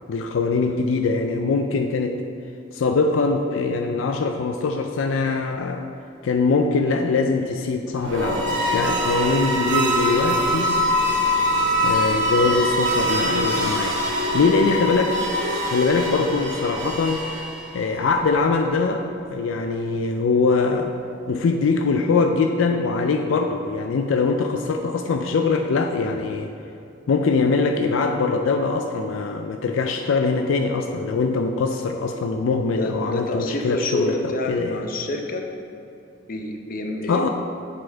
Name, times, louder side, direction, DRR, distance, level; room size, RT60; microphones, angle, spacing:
voice 1, 0.1-2.2 2.7-5.8 6.2-10.8 11.8-14.0 14.3-15.2 15.7-17.2 17.7-19.0 19.3-20.9 21.3-26.5 27.1-34.8 37.1-37.3, left 4 dB, 80° left, 4 dB, 0.4 m, -22 dB
sound 1, 8.0-17.9, equal, 65° right, 1.1 m, -23 dB
voice 2, 32.8-35.4 36.3-37.3, left 2 dB, 45° left, 3 dB, 0.7 m, -28 dB
7.6 x 4.2 x 4.5 m, 2.7 s
head